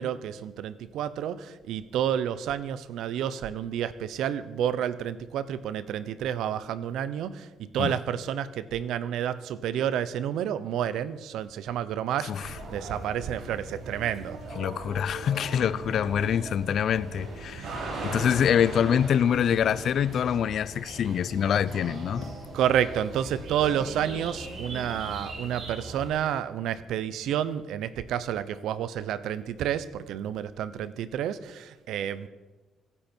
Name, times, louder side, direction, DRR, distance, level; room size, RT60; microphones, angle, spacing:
voice 1, 0.0-14.4 17.6-17.7 22.5-32.3, right 10 dB, 85° right, 15 dB, 0.9 m, -30 dB
voice 2, 12.2-12.6 14.6-17.7 18.0-22.3, left 8 dB, 65° left, 18 dB, 0.6 m, -25 dB
sound 1, 12.4-26.1, right 2 dB, 70° right, 5.8 m, -39 dB
24.5 x 10.0 x 4.5 m, 1.2 s
cardioid pair, 90°, 0 cm